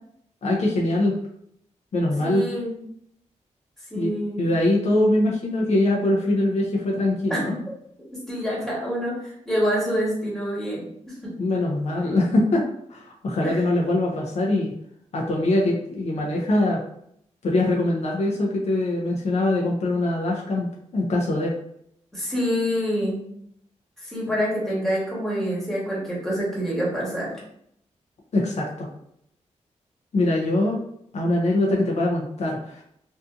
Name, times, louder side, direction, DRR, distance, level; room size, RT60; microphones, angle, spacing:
voice 1, 0.4-1.1 1.9-2.4 3.9-4.1 4.4-7.5 11.4-14.7 15.1-16.8 17.4-20.7 20.9-21.5 28.3-28.9 30.1-30.8 31.1-32.8, left 1 dB, 60° left, -1 dB, 0.5 m, -23 dB
voice 2, 2.2-2.7 3.9-4.4 7.3-7.6 8.3-10.8 13.4-13.6 22.1-23.2 24.0-27.4, equal, 5° left, -6 dB, 1.2 m, -26 dB
2.6 x 2.4 x 2.4 m, 0.71 s
wide cardioid pair, 105°, 13 cm